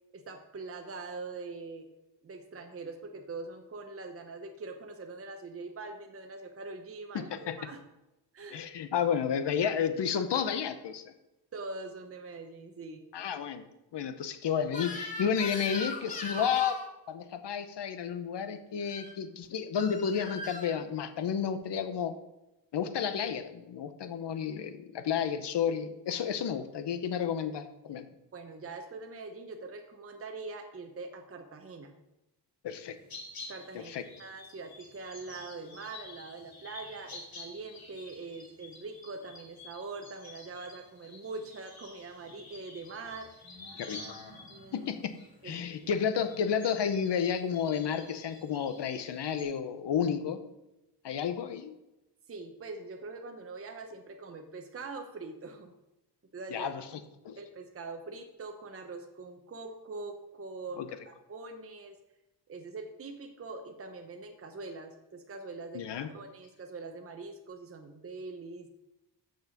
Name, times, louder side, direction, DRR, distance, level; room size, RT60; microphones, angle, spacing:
voice 1, 0.1-1.9 2.2-7.8 8.3-8.7 11.5-13.0 28.3-31.9 33.5-43.3 44.5-44.9 45.4-45.8 52.3-55.7 56.3-56.7 57.3-62.0 62.5-68.7, right 3 dB, 30° right, 4 dB, 0.8 m, -43 dB
voice 2, 7.1-7.5 8.5-11.1 13.1-16.8 17.1-22.1 22.7-28.1 32.6-33.0 33.7-34.0 43.8-44.2 44.7-45.2 45.4-50.4 51.0-51.7 56.5-56.9 57.2-57.4 60.8-60.9 65.7-66.1, left 7 dB, 70° left, 10 dB, 0.9 m, -31 dB
Crying sobbing / Screech, 14.7-16.9 18.8-19.1 19.8-20.7, left 1 dB, 15° left, 1.4 m, -40 dB
sound 1, 32.7-49.4, left 2 dB, 55° left, 2.6 m, -50 dB
7.0 x 6.3 x 5.9 m, 0.95 s
wide cardioid pair, 130°, 43 cm